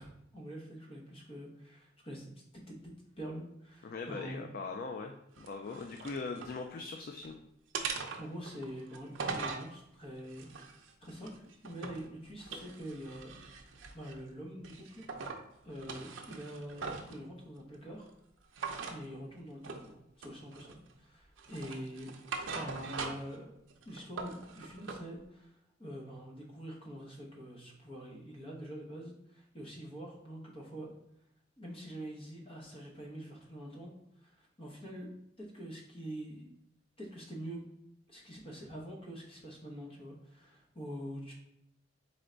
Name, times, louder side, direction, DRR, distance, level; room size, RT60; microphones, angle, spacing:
voice 1, 0.0-2.3 2.7-4.5 5.7-5.9 8.2-10.7 11.0-13.4 13.6-15.0 15.6-18.1 18.9-22.1 22.5-23.5 23.9-30.9 31.6-35.1 35.4-36.5 37.0-37.6 38.1-41.3, equal, 30° left, -2 dB, 1.1 m, -45 dB
voice 2, 3.8-7.4, left 4 dB, 50° left, 4 dB, 0.3 m, -41 dB
sound 1, 5.4-6.6 7.0-7.3 7.7-9.7 10.3-12.1 12.4-14.2 14.6-15.4 15.8-17.2 18.5-19.0 19.6-19.9 20.2-20.9 21.4-23.4 23.7-25.0, right 4 dB, 80° right, 0.6 m, -41 dB
3.9 x 3.3 x 3.8 m, 0.81 s
head